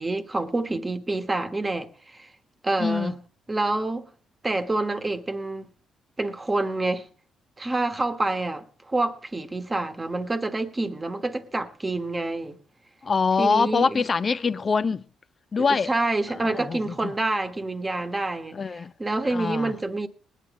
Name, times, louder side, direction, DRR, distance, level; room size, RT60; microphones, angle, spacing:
voice 1, 0.0-2.3 2.6-3.2 3.5-4.1 4.4-5.7 6.2-7.1 7.6-12.6 13.4-14.1 15.6-20.1, right 2 dB, 20° right, 1.3 m, -27 dB
voice 2, 2.8-3.1 13.0-15.0 15.5-15.9 16.4-17.1 18.5-18.9 19.3-19.7, left 5 dB, 40° left, 0.7 m, -24 dB
20.0 x 9.1 x 3.7 m
cardioid pair, 90°, 0 cm